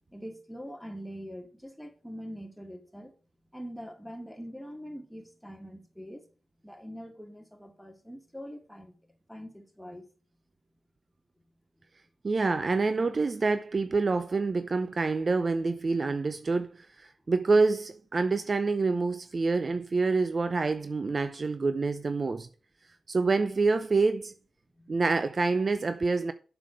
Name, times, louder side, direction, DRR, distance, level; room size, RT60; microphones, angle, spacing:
voice 1, 0.1-3.1 3.5-6.3 6.6-10.1 11.8-11.9 24.7-24.9, equal, ahead, 2.3 m, -43 dB
voice 2, 12.2-22.5 23.1-24.3 24.9-26.3, right 3 dB, 50° right, 0.6 m, -27 dB
7.4 x 7.1 x 4.8 m
supercardioid pair, 45°, 0 cm